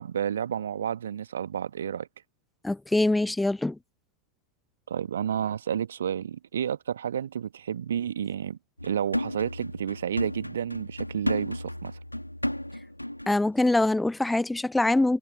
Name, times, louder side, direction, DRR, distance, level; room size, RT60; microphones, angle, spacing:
voice 1, 0.0-2.1 4.9-8.6 8.8-11.9, right 9 dB, 65° right, 1.3 m, -31 dB
voice 2, 2.6-3.8 13.3-15.2, left 2 dB, 5° left, 0.6 m, -24 dB
sound 1, 8.8-13.4 13.7-13.9, left 1 dB, 90° left, 1.7 m, -33 dB
figure-of-eight pair, 90°, 0 cm